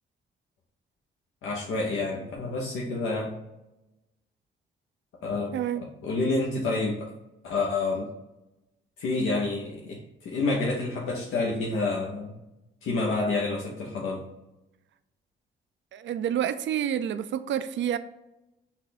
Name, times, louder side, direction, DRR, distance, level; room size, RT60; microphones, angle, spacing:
voice 1, 1.4-3.3 5.2-7.1 7.4-8.1 9.0-12.3 12.8-14.2, left 3 dB, 80° left, -3 dB, 0.8 m, -28 dB
voice 2, 5.5-5.8 15.9-18.0, right 10 dB, 65° right, 12 dB, 0.4 m, -28 dB
5.6 x 2.3 x 4.0 m, 0.93 s
supercardioid pair, 55°, 21 cm